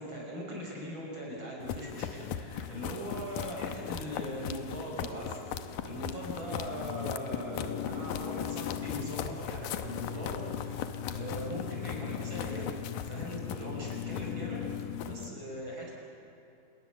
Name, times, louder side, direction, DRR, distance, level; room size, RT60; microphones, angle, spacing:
voice 1, 0.0-10.8 11.1-12.8 13.0-15.9, equal, 30° right, -2 dB, 7.0 m, -40 dB
sound 1, 1.6-15.3, left 9 dB, 75° left, 2.3 m, -37 dB
28.0 x 20.5 x 7.0 m, 2.7 s
omnidirectional pair, 4.4 m